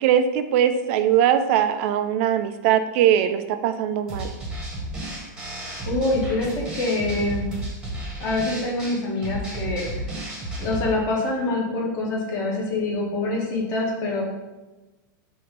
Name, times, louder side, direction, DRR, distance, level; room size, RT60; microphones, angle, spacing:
voice 1, 0.0-4.3, right 9 dB, 40° right, 9 dB, 0.4 m, -21 dB
sound 1, 4.1-10.9, right 1 dB, 5° right, 1.2 m, -32 dB
voice 2, 5.8-7.5 8.2-9.9 10.6-14.2, left 2 dB, 25° left, -2 dB, 1.4 m, -25 dB
6.6 x 2.8 x 5.3 m, 1.1 s
supercardioid pair, 170°, 11 cm